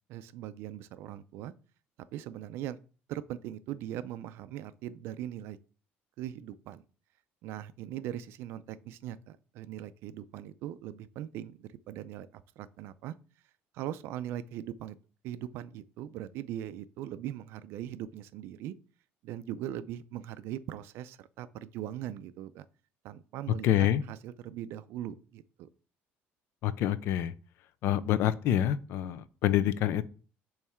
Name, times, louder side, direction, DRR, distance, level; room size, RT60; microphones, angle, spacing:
voice 1, 0.1-1.5 2.1-2.8 3.1-5.6 6.2-6.8 7.4-13.2 13.7-15.0 15.2-18.7 19.2-22.7 23.0-25.7, right 12 dB, 65° right, 0.4 m, -40 dB
voice 2, 23.6-24.0 26.6-27.3 27.8-30.0, left 11 dB, 60° left, 0.4 m, -27 dB
7.1 x 3.2 x 4.4 m
cardioid pair, 165°, 5 cm